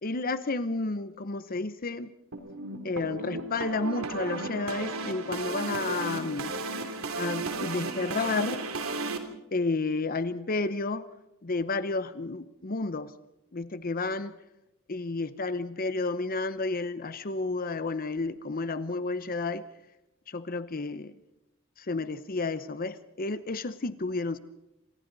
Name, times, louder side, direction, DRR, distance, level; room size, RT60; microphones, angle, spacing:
voice 1, 0.0-2.1 2.8-6.5 7.2-8.6 9.5-11.1 11.4-13.1 13.5-14.3 14.9-19.7 20.3-21.1 21.8-24.4, left 3 dB, 45° left, 12 dB, 0.8 m, -31 dB
sound 1, 2.3-9.2, right 3 dB, 85° right, 3.1 m, -34 dB
28.0 x 26.0 x 4.1 m, 0.96 s
head